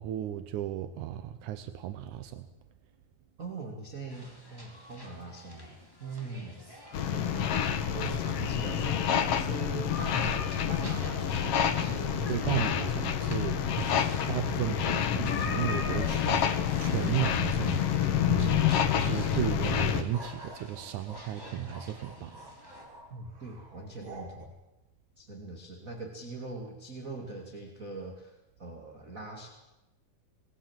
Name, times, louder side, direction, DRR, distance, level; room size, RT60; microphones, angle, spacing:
voice 1, 0.0-2.5 12.3-18.6 18.9-22.4, right 11 dB, 75° right, 10 dB, 1.8 m, -34 dB
voice 2, 3.4-5.7 6.0-6.7 7.1-12.8 13.6-14.3 23.1-24.5 25.2-29.5, right 3 dB, 25° right, 2 dB, 2.4 m, -42 dB
sound 1, 4.1-22.8, equal, 5° left, 3.7 m, -50 dB
sound 2, 6.9-20.0, left 8 dB, 70° left, 1.4 m, -28 dB
sound 3, 16.2-19.2 19.6-24.5, right 1 dB, 90° right, 8.0 m, -49 dB
26.5 x 20.5 x 7.5 m, 0.99 s
omnidirectional pair, 4.6 m